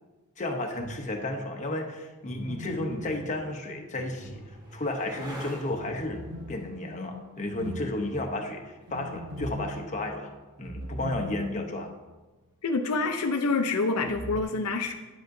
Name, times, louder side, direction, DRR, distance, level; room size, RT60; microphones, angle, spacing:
voice 1, 0.4-10.3 10.6-11.9, left 2 dB, 35° left, 3 dB, 0.8 m, -33 dB
sound 1, 0.7-1.5 2.2-5.0 5.7-11.9 12.2-12.3 14.0-14.4, right 1 dB, 60° right, 0.8 m, -41 dB
sound 2, 3.6-10.6 12.9-13.5, right 1 dB, 20° right, 1.2 m, -49 dB
voice 2, 12.6-14.9, left 3 dB, 75° left, 5 dB, 0.5 m, -27 dB
9.8 x 7.8 x 2.6 m, 1.2 s
head